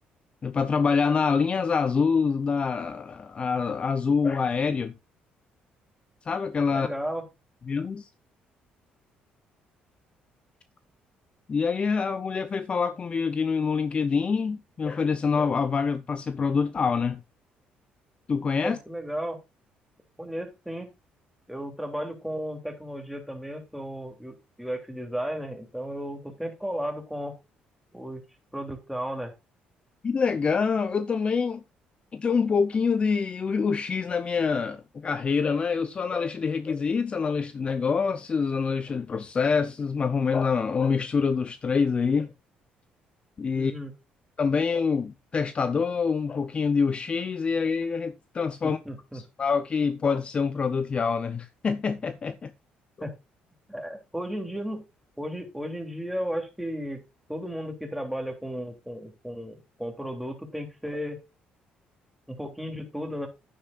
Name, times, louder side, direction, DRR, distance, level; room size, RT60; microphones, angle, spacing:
voice 1, 0.4-4.9 6.3-6.9 7.7-8.1 11.5-17.2 18.3-18.8 30.0-31.6 32.1-42.3 43.4-43.7 44.4-48.8 49.1-52.5, left 5 dB, 35° left, 0.7 m, -26 dB
voice 2, 6.7-7.2 18.6-19.4 20.2-20.9 21.5-27.4 27.9-28.2 28.5-29.3 43.5-43.9 48.6-49.2 53.0-53.1 53.7-54.8 55.2-57.0 57.3-61.2 62.3-63.3, equal, ahead, 3.2 m, -34 dB
10.5 x 9.6 x 2.5 m
cardioid pair, 110°, 3 cm